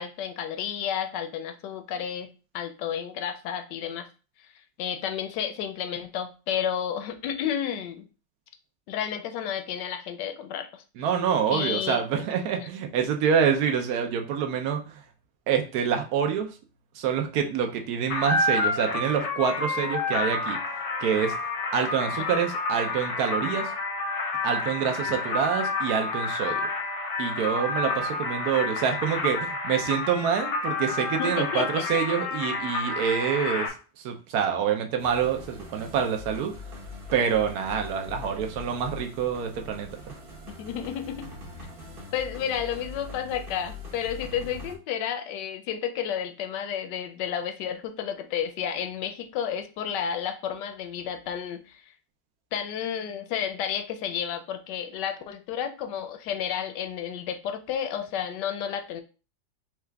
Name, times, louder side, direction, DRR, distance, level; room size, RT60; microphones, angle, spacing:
voice 1, 0.0-4.1 4.8-8.1 8.9-10.8 11.5-12.0 22.3-22.5 31.2-31.9 40.6-41.3 42.1-51.8 52.5-59.0, left 8 dB, 75° left, 7 dB, 1.1 m, -31 dB
voice 2, 11.0-15.0 15.5-16.5 16.9-20.6 21.0-21.3 21.7-23.7 24.4-26.6 27.2-36.5 37.1-40.1, right 7 dB, 65° right, 4 dB, 1.1 m, -26 dB
sound 1, 18.1-33.7, left 3 dB, 55° left, 0.8 m, -29 dB
sound 2, 35.0-44.7, left 3 dB, 45° right, 0.7 m, -42 dB
4.5 x 2.4 x 3.3 m, 0.34 s
omnidirectional pair, 2.0 m